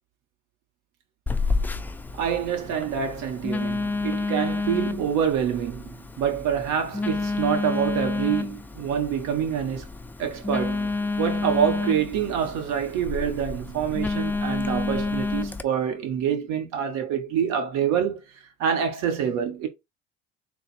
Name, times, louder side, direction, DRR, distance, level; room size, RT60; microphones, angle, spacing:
Telephone, 1.3-15.6, left 3 dB, 5° left, 0.4 m, -29 dB
voice 1, 2.2-9.9 10.2-18.2 18.6-19.7, right 8 dB, 60° right, 1.2 m, -26 dB
3.9 x 2.4 x 4.2 m
hypercardioid pair, 65°, 31 cm